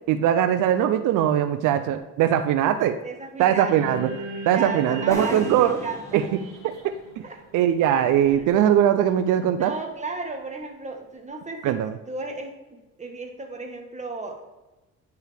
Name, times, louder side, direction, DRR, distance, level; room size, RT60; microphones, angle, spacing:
voice 1, 0.1-3.0 3.4-4.1 4.5-5.8 6.1-7.0 7.5-9.7 11.6-11.9, right 10 dB, 85° right, 9 dB, 0.5 m, -21 dB
voice 2, 3.0-4.0 4.5-6.2 7.2-7.4 8.3-8.5 9.5-11.8 12.1-14.5, right 3 dB, 25° right, 2 dB, 1.4 m, -35 dB
sound 1, 3.7-8.0, right 1 dB, 50° right, 1.6 m, -38 dB
sound 2, 5.1-8.7, equal, 10° left, 1.4 m, -38 dB
10.5 x 4.6 x 3.4 m, 1.1 s
cardioid pair, 90°, 30 cm